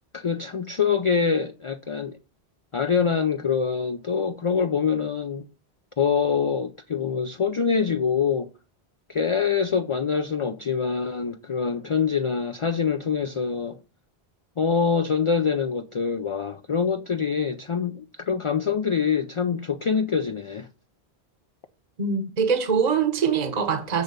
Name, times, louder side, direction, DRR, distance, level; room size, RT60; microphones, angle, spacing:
voice 1, 0.1-2.2 2.7-5.5 6.0-8.5 9.1-13.8 14.6-20.7, left 6 dB, 40° left, 0.4 m, -25 dB
voice 2, 22.0-24.0, right 6 dB, 40° right, 1.1 m, -23 dB
8.3 x 3.9 x 6.7 m
omnidirectional pair, 1.1 m